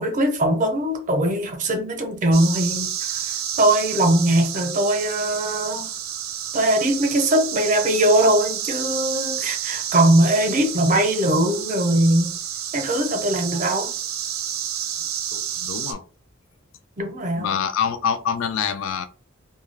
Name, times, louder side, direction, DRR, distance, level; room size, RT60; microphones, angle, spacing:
voice 1, 0.0-5.9 6.5-12.3 12.7-13.9 17.0-17.6, right 1 dB, 40° right, 0.6 m, -21 dB
sound 1, 2.3-15.9, right 9 dB, 85° right, 0.5 m, -30 dB
voice 2, 15.3-16.0 17.4-19.1, left 7 dB, 70° left, 0.3 m, -25 dB
2.3 x 2.2 x 3.2 m
head